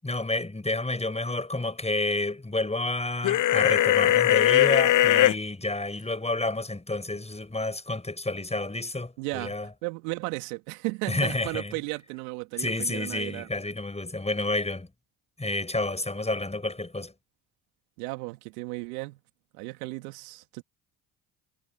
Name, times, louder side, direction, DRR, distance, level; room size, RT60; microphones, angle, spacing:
voice 1, 0.0-9.7 11.1-11.7 12.6-14.9 15.4-17.1, left 2 dB, 15° left, 7.0 m, -30 dB
sound 1, 3.2-5.3, left 13 dB, 45° left, 0.7 m, -20 dB
voice 2, 9.2-9.5 9.8-13.5 18.0-19.2 19.5-20.6, right 26 dB, 80° right, 2.7 m, -35 dB
hypercardioid pair, 60°, 44 cm